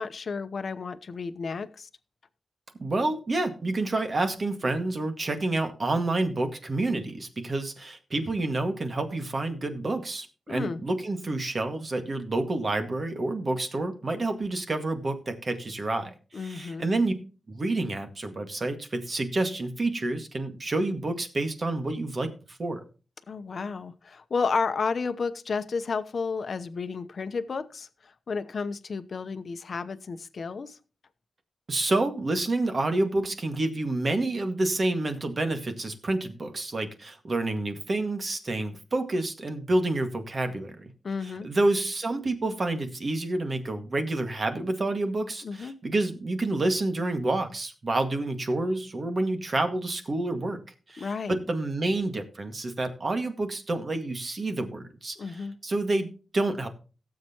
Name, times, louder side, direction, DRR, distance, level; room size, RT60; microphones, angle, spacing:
voice 1, 0.0-1.9 10.5-10.8 16.3-16.9 23.3-30.8 41.0-41.5 45.4-45.7 51.0-51.4 55.2-55.6, left 5 dB, 60° left, 10 dB, 0.8 m, -32 dB
voice 2, 2.8-17.1 17.5-22.8 31.7-40.9 41.2-50.6 50.9-56.7, right 2 dB, 45° right, 7 dB, 1.8 m, -28 dB
17.5 x 7.7 x 2.9 m, 0.34 s
wide cardioid pair, 95°, 0 cm